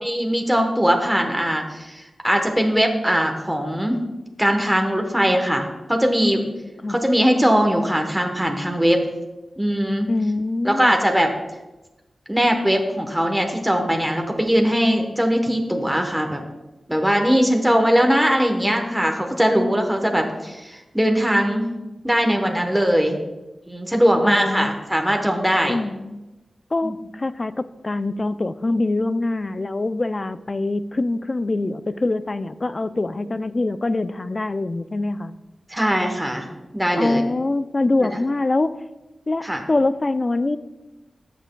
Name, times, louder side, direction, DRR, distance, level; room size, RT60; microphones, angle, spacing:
voice 1, 0.0-4.0 4.4-6.4 6.9-9.0 9.6-10.1 10.6-11.3 12.3-16.4 16.9-21.6 22.0-23.2 23.7-25.8 26.8-27.0 35.7-36.5 36.7-37.2 38.1-38.2 39.4-39.6, equal, 5° right, 3 dB, 1.0 m, -20 dB
voice 2, 10.1-10.9 24.2-24.7 25.7-26.2 26.7-35.4 37.0-38.8 39.3-40.6, left 2 dB, 45° left, 14 dB, 0.4 m, -24 dB
13.5 x 5.9 x 2.2 m, 1.1 s
cardioid pair, 45°, 0 cm